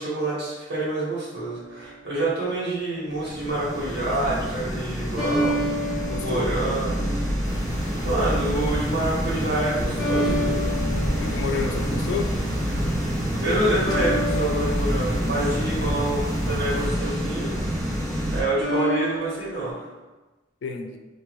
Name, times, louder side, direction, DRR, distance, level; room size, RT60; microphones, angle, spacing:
voice 1, 0.0-7.2 8.0-10.7 11.6-11.8 13.4-17.6 18.3-19.9, right 1 dB, 75° right, -8 dB, 1.4 m, -27 dB
sound 1, 1.4-2.2 5.2-7.2 7.8-8.2 10.0-11.9 13.9-16.3 18.6-19.7, equal, 5° right, 1.0 m, -30 dB
sound 2, 3.1-18.4, equal, 20° right, 0.5 m, -28 dB
voice 2, 6.1-6.5 11.2-12.3 20.6-21.0, left 5 dB, 85° left, 4 dB, 0.4 m, -30 dB
sound 3, 7.4-16.9, equal, 50° left, 0.9 m, -31 dB
2.6 x 2.6 x 3.0 m, 1.2 s
head